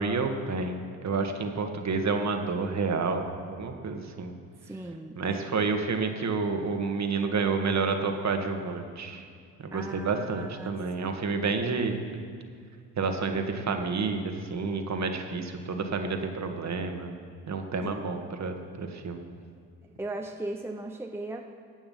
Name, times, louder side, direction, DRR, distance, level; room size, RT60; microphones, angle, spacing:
voice 1, 0.0-4.3 5.2-9.2 9.7-11.9 13.0-17.1 17.5-19.2, right 4 dB, 40° right, 5 dB, 1.6 m, -29 dB
voice 2, 4.6-5.7 9.7-10.8 11.0-11.2 17.8-18.1 19.8-21.4, right 2 dB, 5° right, 3 dB, 0.8 m, -38 dB
15.0 x 8.8 x 5.6 m, 2.2 s
hypercardioid pair, 50°, 42 cm